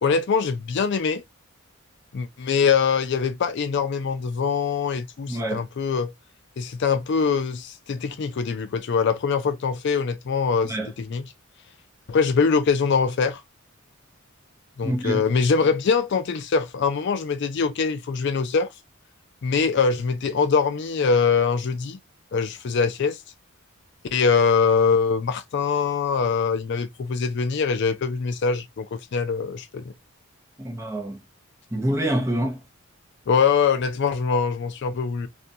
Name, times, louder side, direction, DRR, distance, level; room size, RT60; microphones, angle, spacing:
voice 1, 0.0-1.2 2.1-6.1 6.6-11.2 12.1-13.4 14.8-18.7 19.4-22.0 22.3-23.2 24.1-29.9 33.3-35.3, left 5 dB, 55° left, 0.4 m, -23 dB
voice 2, 5.3-5.6 10.6-10.9 14.8-15.3 30.6-31.2 31.7-32.6, right 1 dB, 15° right, 0.6 m, -26 dB
2.5 x 2.2 x 2.6 m
head